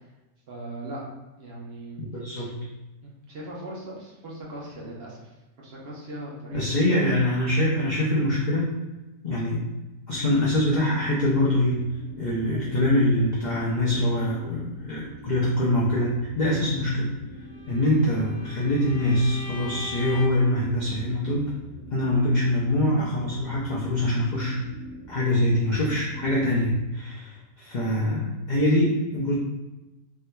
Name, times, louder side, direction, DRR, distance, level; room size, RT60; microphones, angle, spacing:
voice 1, 0.5-1.0 1.4-2.0 2.4-2.5 3.0-5.3 5.6-6.6, right 1 dB, 50° right, -5 dB, 0.9 m, -39 dB
voice 2, 2.0-2.6 6.5-8.7 9.2-9.7 10.1-11.8 12.2-17.1 17.7-21.5 21.9-24.6 25.1-29.3, left 1 dB, 60° left, -6 dB, 0.4 m, -24 dB
sound 1, 10.1-26.9, right 1 dB, 75° right, 1.0 m, -43 dB
Bowed string instrument, 17.5-20.5, left 1 dB, 85° left, 1.2 m, -41 dB
3.4 x 2.7 x 2.2 m, 1.1 s
omnidirectional pair, 1.5 m